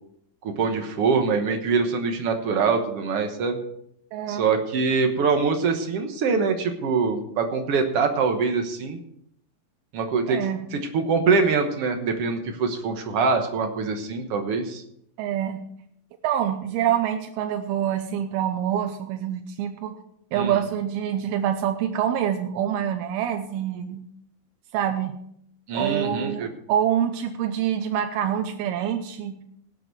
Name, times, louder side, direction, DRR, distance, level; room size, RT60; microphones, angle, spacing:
voice 1, 0.4-3.6 4.3-9.0 9.9-14.8 20.3-20.6 25.7-26.5, right 5 dB, 70° right, 5 dB, 1.4 m, -24 dB
voice 2, 4.1-4.5 10.3-10.7 15.2-15.6 16.2-20.0 20.3-24.1 24.7-25.2 25.7-29.4, right 10 dB, 90° right, 6 dB, 2.7 m, -26 dB
17.5 x 7.9 x 4.6 m, 0.72 s
omnidirectional pair, 4.3 m